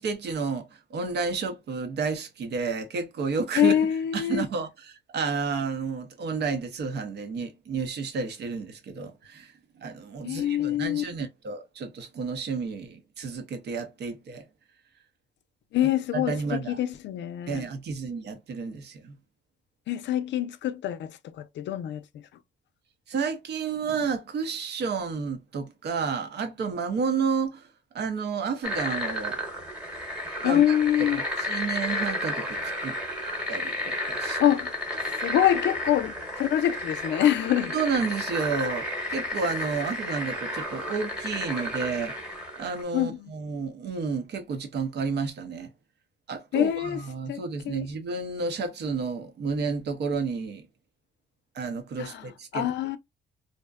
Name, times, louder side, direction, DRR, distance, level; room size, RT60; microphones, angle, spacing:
voice 1, 0.0-3.7 4.1-9.5 9.8-14.4 15.8-16.8 17.5-19.2 23.1-27.7 27.9-29.4 30.4-33.0 33.5-34.4 37.7-42.2 42.6-45.7 46.3-50.7 51.5-52.7, right 5 dB, 60° right, 0.6 m, -31 dB
voice 2, 3.5-4.5 10.2-11.0 15.7-17.6 19.9-22.2 30.4-31.2 34.4-34.8 35.0-37.7 42.9-43.3 46.5-47.0 47.3-47.9 52.0-53.0, left 11 dB, 65° left, 0.4 m, -25 dB
sound 1, 28.6-42.8, left 1 dB, 5° right, 1.0 m, -32 dB
2.6 x 2.1 x 2.3 m
cardioid pair, 90°, 20 cm